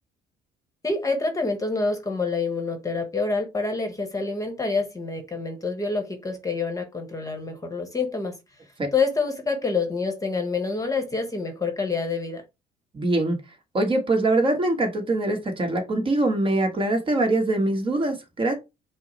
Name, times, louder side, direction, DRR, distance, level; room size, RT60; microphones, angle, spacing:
voice 1, 0.8-8.3 8.9-12.4, left 4 dB, 20° left, 1.0 m, -27 dB
voice 2, 12.9-13.4 13.7-18.5, right 2 dB, 30° right, 1.2 m, -23 dB
5.4 x 2.0 x 4.2 m
cardioid pair, 110°, 17 cm